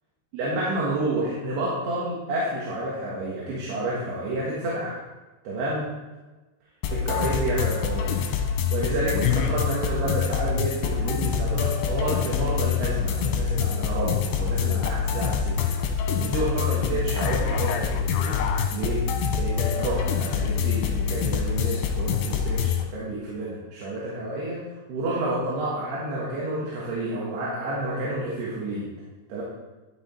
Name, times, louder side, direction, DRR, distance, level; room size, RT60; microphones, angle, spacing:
voice 1, 0.3-5.0 5.4-5.9 6.9-8.2 8.7-15.7 16.2-18.4 18.7-19.0 19.3-24.6 24.9-28.9 29.3-29.4, right 2 dB, 65° right, -6 dB, 3.3 m, -29 dB
sound 1, 6.8-22.8, left 7 dB, 75° left, 2.4 m, -25 dB
12.0 x 5.8 x 4.4 m, 1.2 s
omnidirectional pair, 5.4 m